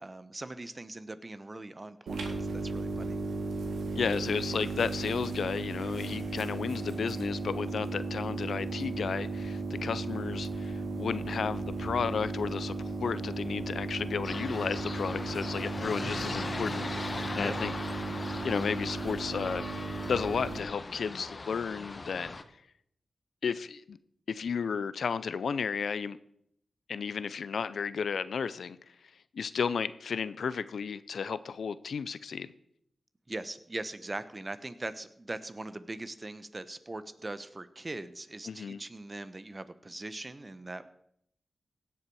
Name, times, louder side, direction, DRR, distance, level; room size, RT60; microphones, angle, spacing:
voice 1, 0.0-3.2 17.0-17.5 33.3-40.9, right 2 dB, 35° right, 13 dB, 0.9 m, -41 dB
sound 1, 2.1-20.6, right 3 dB, 90° right, 2.0 m, -35 dB
voice 2, 4.0-17.7 18.4-19.7 20.1-22.3 23.4-24.0 24.3-26.2 26.9-28.8 29.3-32.5 38.5-38.8, left 6 dB, 80° left, 16 dB, 0.5 m, -33 dB
sound 2, 14.2-22.4, left 3 dB, 45° left, 1.0 m, -39 dB
17.0 x 7.0 x 4.8 m, 0.72 s
cardioid pair, 45°, 0 cm